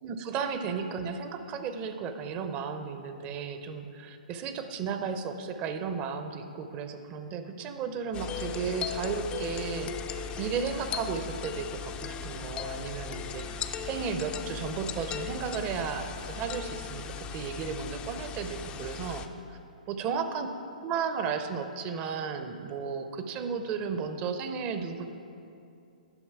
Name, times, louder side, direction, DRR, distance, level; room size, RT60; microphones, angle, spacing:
voice 1, 0.0-19.6 19.9-20.5 20.8-25.1, right 6 dB, 30° right, 8 dB, 0.6 m, -34 dB
sound 1, 8.1-19.3, left 6 dB, 20° left, 0.4 m, -37 dB
10.5 x 6.2 x 4.7 m, 2.6 s
figure-of-eight pair, 125°, 5 cm